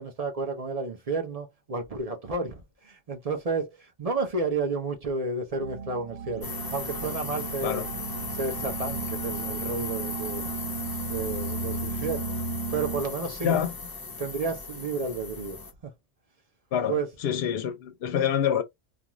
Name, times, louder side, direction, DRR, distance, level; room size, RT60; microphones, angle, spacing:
voice 1, 0.0-2.5 2.8-7.9 8.3-10.5 11.0-12.3 12.7-13.6 14.2-15.6 16.9-17.1, right 3 dB, 40° right, 0.6 m, -31 dB
sound 1, 5.6-13.0, right 5 dB, 90° right, 0.9 m, -35 dB
sound 2, 6.4-15.7, left 4 dB, 35° left, 0.3 m, -37 dB
voice 2, 13.4-13.7 16.7-18.6, left 9 dB, 65° left, 0.7 m, -26 dB
2.5 x 2.3 x 2.9 m
omnidirectional pair, 1.2 m